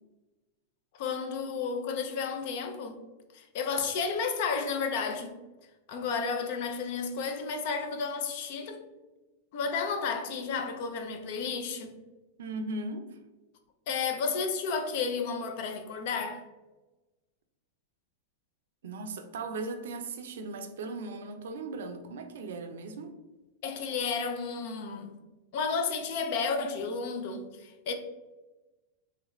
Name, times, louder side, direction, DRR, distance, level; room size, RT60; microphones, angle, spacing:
voice 1, 0.9-3.0 3.3-5.3 5.9-8.8 9.5-12.0 13.9-16.4 23.6-25.1 25.5-27.9, left 5 dB, 60° left, 0.5 m, -32 dB
voice 2, 12.4-13.2 18.8-23.2, right 3 dB, 80° right, 0.4 m, -38 dB
3.2 x 2.4 x 3.0 m
supercardioid pair, 130°, 0 cm